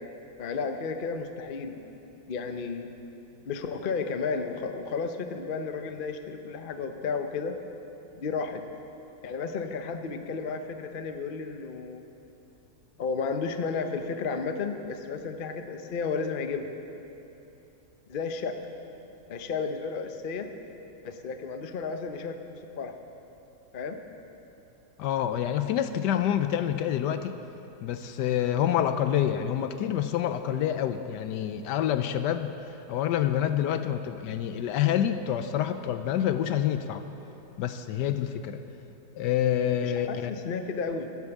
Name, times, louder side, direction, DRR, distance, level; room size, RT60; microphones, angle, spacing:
voice 1, 0.4-1.8 2.3-2.9 3.5-7.5 8.1-8.6 9.2-12.0 13.0-16.7 18.1-18.5 19.3-20.5 21.0-22.4 22.8-22.9 23.7-24.0 39.8-41.1, left 5 dB, 50° left, 6 dB, 0.6 m, -32 dB
voice 2, 25.0-27.4 27.8-32.5 32.9-37.0 37.6-38.6 39.2-40.3, left 10 dB, 75° left, 10 dB, 1.1 m, -27 dB
15.5 x 8.5 x 7.1 m, 3.0 s
omnidirectional pair, 2.0 m